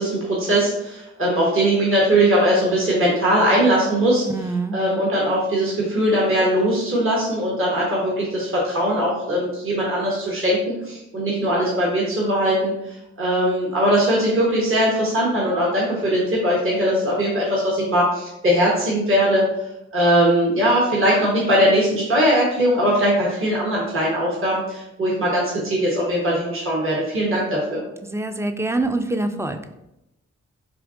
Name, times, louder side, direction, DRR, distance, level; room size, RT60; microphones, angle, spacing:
voice 1, 0.0-4.2 4.7-12.7 13.2-19.4 19.9-27.8, equal, 45° right, -4 dB, 1.2 m, -20 dB
voice 2, 4.2-4.8 28.0-29.6, right 2 dB, 10° right, 8 dB, 0.3 m, -25 dB
4.3 x 2.6 x 2.5 m, 0.87 s
supercardioid pair, 45°, 30 cm